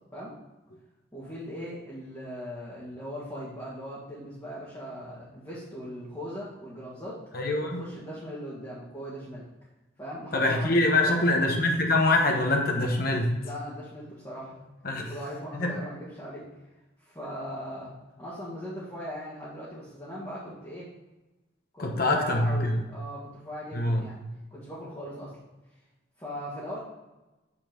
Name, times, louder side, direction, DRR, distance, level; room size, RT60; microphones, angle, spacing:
voice 1, 1.1-7.2 7.6-9.4 10.0-11.3 13.4-14.6 15.0-16.4 17.0-20.9 21.7-24.2 24.5-25.3 26.2-26.8, equal, 15° left, -9 dB, 1.9 m, -39 dB
voice 2, 7.3-7.8 10.3-13.4 14.8-15.0 15.5-15.8 21.8-22.8 23.7-24.1, left 2 dB, 50° left, 2 dB, 1.1 m, -24 dB
8.8 x 4.4 x 5.1 m, 1.1 s
head